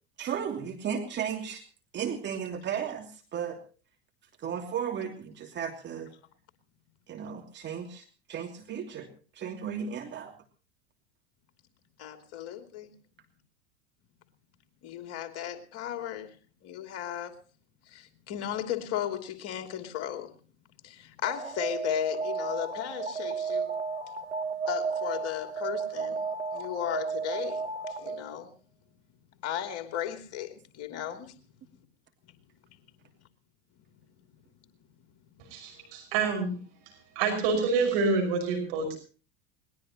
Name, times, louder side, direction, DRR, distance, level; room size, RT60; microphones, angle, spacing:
voice 1, 0.2-1.6 1.9-3.6 4.4-6.1 7.1-8.0 8.3-9.1 9.4-10.3, right 8 dB, 35° right, 2.8 m, -34 dB
voice 2, 12.0-12.9 14.8-16.4 16.6-17.4 17.9-20.4 20.8-23.7 24.7-26.2 26.5-28.5 29.4-31.3 32.7-32.8, left 11 dB, 45° left, 2.9 m, -35 dB
Alarm, 21.3-28.3, right 5 dB, 90° right, 1.0 m, -33 dB
voice 3, 35.5-36.6 37.2-39.0, right 4 dB, 55° right, 5.9 m, -27 dB
21.0 x 20.0 x 3.0 m
figure-of-eight pair, 80°, 33 cm